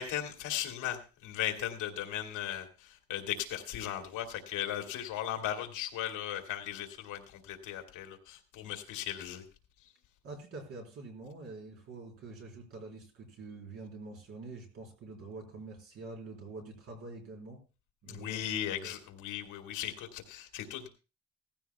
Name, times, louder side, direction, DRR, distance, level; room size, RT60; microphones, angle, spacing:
voice 1, 0.0-9.4 18.1-20.9, left 11 dB, 75° left, 4 dB, 2.1 m, -37 dB
voice 2, 10.2-17.6 18.0-18.5 18.8-18.9, right 3 dB, 50° right, 1 dB, 4.0 m, -46 dB
17.0 x 15.0 x 2.3 m, 0.33 s
cardioid pair, 175°, 31 cm